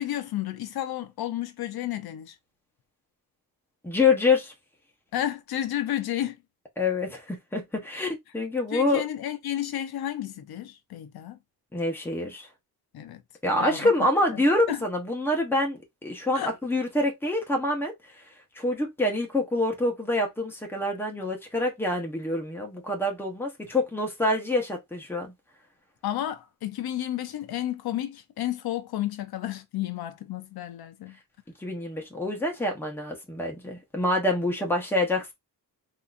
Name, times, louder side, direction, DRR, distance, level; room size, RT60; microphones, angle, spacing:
voice 1, 0.0-2.4 5.1-6.4 8.0-8.1 8.7-11.4 12.9-13.2 13.5-14.4 14.7-14.8 16.3-16.6 26.0-31.1, left 12 dB, 75° left, 0.6 m, -32 dB
voice 2, 3.8-4.5 6.8-9.0 11.7-12.5 13.4-17.9 18.6-25.3 31.6-35.3, left 2 dB, 5° left, 0.8 m, -26 dB
3.7 x 2.8 x 2.4 m
wide cardioid pair, 175°, 37 cm